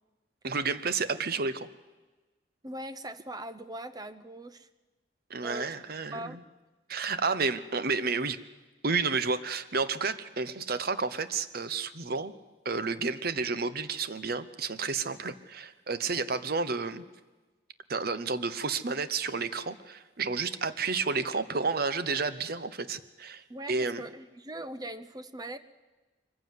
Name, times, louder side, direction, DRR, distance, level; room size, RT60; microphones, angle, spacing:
voice 1, 0.4-1.7 5.3-6.4 6.9-8.4 8.8-12.3 12.6-17.0 17.9-24.0, right 4 dB, 55° right, 13 dB, 0.9 m, -31 dB
voice 2, 2.6-4.7 5.4-5.7 6.1-6.4 23.5-25.6, right 1 dB, 20° right, 12 dB, 0.8 m, -40 dB
23.0 x 15.0 x 9.4 m, 1.2 s
head